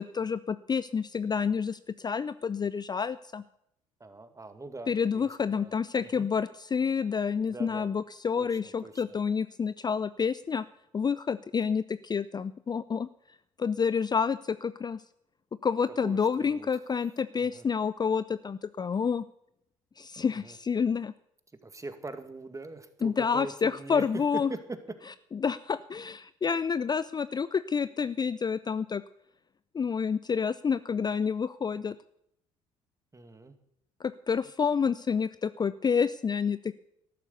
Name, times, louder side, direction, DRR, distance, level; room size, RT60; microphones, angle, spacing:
voice 1, 0.0-3.4 4.9-10.6 10.9-13.1 13.6-15.0 15.6-19.2 20.0-21.1 23.0-24.5 25.4-29.0 29.7-32.0 34.0-36.7, left 6 dB, 25° left, 16 dB, 0.5 m, -29 dB
voice 2, 4.0-5.7 6.0-6.3 7.5-7.9 8.4-9.0 16.0-17.0 17.3-17.7 20.3-20.6 21.6-24.8 33.1-33.6, right 3 dB, 20° right, 9 dB, 2.0 m, -42 dB
13.5 x 11.5 x 6.9 m, 0.76 s
hypercardioid pair, 55°, 16 cm